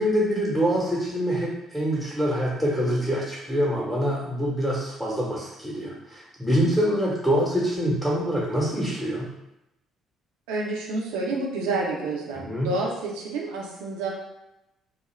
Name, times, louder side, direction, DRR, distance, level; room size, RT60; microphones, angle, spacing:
voice 1, 0.0-9.3 12.3-12.7, equal, ahead, -7 dB, 0.9 m, -25 dB
voice 2, 10.5-14.1, right 2 dB, 70° right, -2 dB, 0.5 m, -29 dB
2.4 x 2.1 x 3.1 m, 0.89 s
figure-of-eight pair, 50°, 0 cm